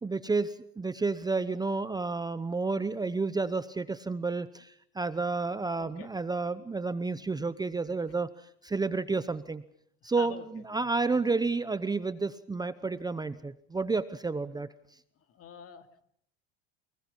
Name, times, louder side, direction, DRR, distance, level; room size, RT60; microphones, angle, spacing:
voice 1, 0.0-8.3 8.6-9.6 10.0-14.7, right 3 dB, 10° right, 13 dB, 0.8 m, -31 dB
voice 2, 5.8-6.1 8.1-8.2 10.0-10.4 15.2-16.0, left 9 dB, 45° left, 7 dB, 2.7 m, -46 dB
30.0 x 20.0 x 5.5 m, 0.68 s
supercardioid pair, 105°, 32 cm